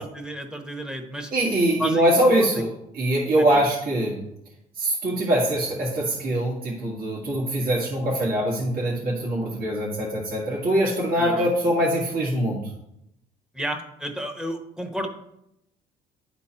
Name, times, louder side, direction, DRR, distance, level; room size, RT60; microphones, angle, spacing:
voice 1, 0.0-1.3 1.8-2.0 2.4-2.6 3.4-3.6 11.1-11.5 13.5-15.1, equal, 5° right, 5 dB, 1.0 m, -32 dB
voice 2, 1.3-2.7 2.9-4.2 4.8-12.6, right 1 dB, 60° right, -5 dB, 2.0 m, -23 dB
10.5 x 4.2 x 4.4 m, 0.83 s
cardioid pair, 110°, 17 cm